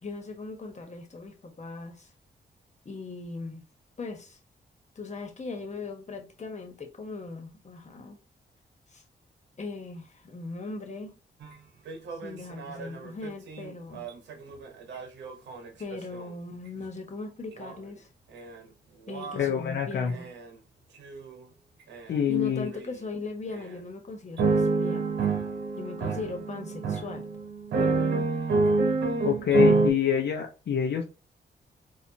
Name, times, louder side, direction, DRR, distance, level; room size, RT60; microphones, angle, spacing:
voice 1, 0.0-2.1 2.8-3.6 4.0-4.4 4.9-8.2 8.9-9.0 9.6-11.1 12.2-14.0 15.8-18.1 19.1-20.3 22.3-25.1 25.7-27.2, left 3 dB, 40° left, 1.2 m, -39 dB
sound 1, 11.4-11.5 11.9-16.2 17.6-17.7 18.3-18.6 19.1-19.5 20.1-20.5 21.0-21.3 21.9-22.1 22.7-22.9 23.5-23.7 24.4-29.9, right 3 dB, 85° right, 0.9 m, -28 dB
voice 2, 19.4-20.1 22.1-22.7 29.2-31.0, left 9 dB, 75° left, 0.6 m, -26 dB
4.3 x 2.5 x 2.7 m
cardioid pair, 70°, 18 cm